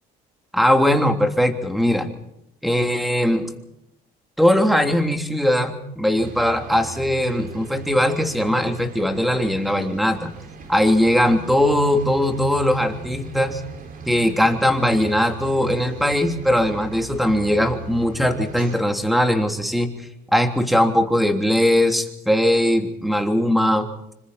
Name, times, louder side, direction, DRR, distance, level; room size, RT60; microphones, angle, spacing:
voice 1, 0.5-2.1 2.6-3.5 4.4-10.3 10.7-13.6 14.1-19.9 20.3-23.9, equal, ahead, 5 dB, 3.2 m, -20 dB
sound 1, 6.2-18.8, right 3 dB, 55° right, 5.3 m, -39 dB
27.0 x 25.5 x 4.3 m, 0.80 s
cardioid pair, 110°, 17 cm